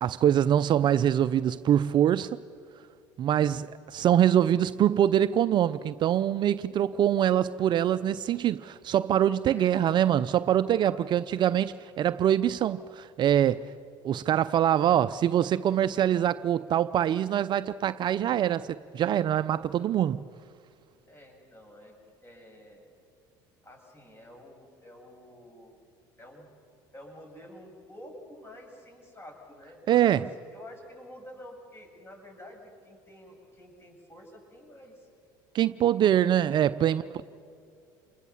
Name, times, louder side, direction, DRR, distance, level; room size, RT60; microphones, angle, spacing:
voice 1, 0.0-2.4 3.2-13.6 14.0-20.2 29.9-30.2 35.5-37.0, right 10 dB, 45° right, 0.6 m, -24 dB
voice 2, 10.8-11.1 21.1-22.0 22.2-22.9 23.6-25.8 26.2-26.5 26.9-35.1 36.8-37.0, left 1 dB, 25° left, 8.0 m, -49 dB
28.0 x 20.5 x 7.2 m
supercardioid pair, 90°, 10 cm